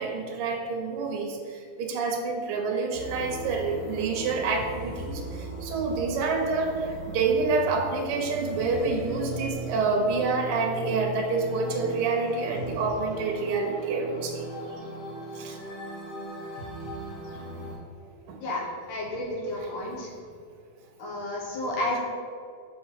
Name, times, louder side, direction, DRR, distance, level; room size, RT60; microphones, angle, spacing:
voice 1, 0.0-14.5 15.3-15.6 18.3-18.4 19.6-19.9, right 4 dB, 65° right, 1 dB, 1.5 m, -28 dB
sound 1, 2.9-17.7, right 1 dB, 60° left, 2.8 m, -38 dB
voice 2, 18.4-20.1 21.0-22.0, left 1 dB, 90° left, -2 dB, 2.8 m, -31 dB
6.4 x 4.7 x 4.9 m, 2.3 s
omnidirectional pair, 3.4 m